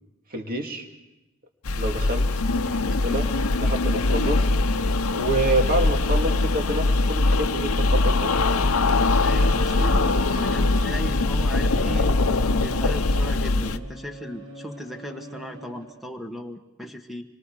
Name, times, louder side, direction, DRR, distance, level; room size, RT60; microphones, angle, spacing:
voice 1, 0.3-0.9 1.7-2.3 2.5-3.3 3.6-4.4 5.1-8.3, right 1 dB, 40° right, 3 dB, 2.5 m, -27 dB
sound 1, 1.6-13.8, left 2 dB, 75° left, 0.9 m, -22 dB
sound 2, 3.3-16.0, right 1 dB, 80° right, 6.3 m, -44 dB
voice 2, 9.2-12.2 12.5-17.2, equal, ahead, 5 dB, 1.3 m, -36 dB
26.0 x 23.5 x 4.9 m, 1.0 s
head